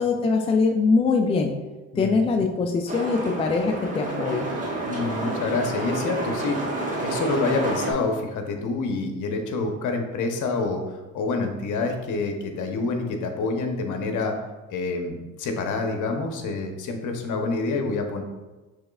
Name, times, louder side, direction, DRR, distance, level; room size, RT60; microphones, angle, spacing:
voice 1, 0.0-1.5 2.0-4.5, left 4 dB, 15° left, 4 dB, 0.4 m, -22 dB
sound 1, 2.9-7.9, right 2 dB, 20° right, 1.4 m, -29 dB
voice 2, 4.8-6.6 7.0-14.3 14.7-18.2, left 3 dB, 55° left, 4 dB, 0.9 m, -27 dB
6.3 x 3.2 x 2.4 m, 1.2 s
supercardioid pair, 75°, 37 cm